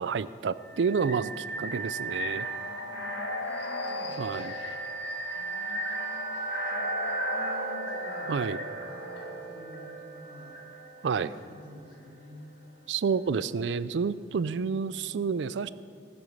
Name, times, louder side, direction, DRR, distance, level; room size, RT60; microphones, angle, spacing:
voice 1, 0.0-2.5 4.2-4.5 8.3-8.6 11.0-11.3 12.9-15.7, right 5 dB, 85° right, 16 dB, 0.4 m, -29 dB
sound 1, 0.6-11.4, right 1 dB, 85° left, 1.4 m, -34 dB
voice 2, 2.4-4.2 5.3-6.3 6.6-8.3 8.8-10.6 11.1-12.4, left 1 dB, 50° left, -4 dB, 3.5 m, -50 dB
17.0 x 7.1 x 6.4 m, 2.3 s
head